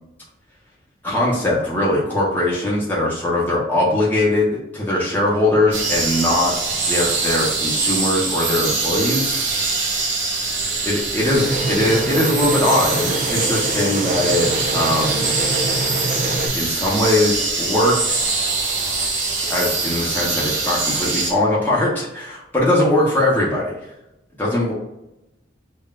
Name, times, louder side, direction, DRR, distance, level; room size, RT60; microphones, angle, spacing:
voice 1, 1.0-9.4 10.8-15.3 16.5-18.5 19.5-23.7 24.4-24.7, left 1 dB, 10° left, -6 dB, 0.8 m, -20 dB
sound 1, 5.7-21.3, right 3 dB, 85° right, 1.1 m, -23 dB
sound 2, 11.3-16.5, right 2 dB, 50° right, 0.5 m, -25 dB
5.6 x 2.3 x 2.3 m, 0.88 s
head